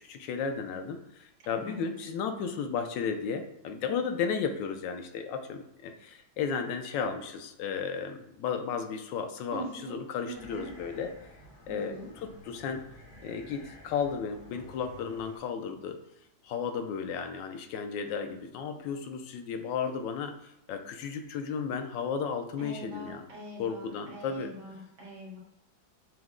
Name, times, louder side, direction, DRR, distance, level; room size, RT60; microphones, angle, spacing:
voice 1, 0.1-1.0 1.5-5.9 6.4-11.1 11.7-12.8 13.2-16.0 16.5-20.3 20.7-23.2 23.6-24.5, left 6 dB, 85° left, 6 dB, 1.3 m, -34 dB
voice 2, 1.4-1.9 9.5-10.0 10.3-10.7 11.7-12.1 22.6-25.4, right 1 dB, 75° right, -3 dB, 1.8 m, -43 dB
sound 1, 10.3-15.4, left 1 dB, 60° left, 1.8 m, -52 dB
5.9 x 2.1 x 3.6 m, 0.86 s
omnidirectional pair, 1.9 m